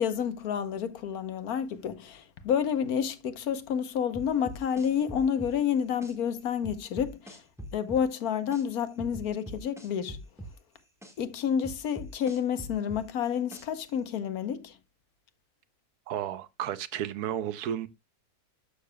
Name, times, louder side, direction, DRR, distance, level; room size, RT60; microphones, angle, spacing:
voice 1, 0.0-7.4 7.7-10.2 11.2-14.8, left 8 dB, 75° left, 1.4 m, -29 dB
sound 1, 4.1-6.1 6.6-8.6 9.0-11.1 11.6-13.9, right 1 dB, ahead, 1.6 m, -42 dB
voice 2, 16.1-17.9, right 10 dB, 90° right, 1.3 m, -33 dB
12.0 x 6.7 x 2.2 m
omnidirectional pair, 1.6 m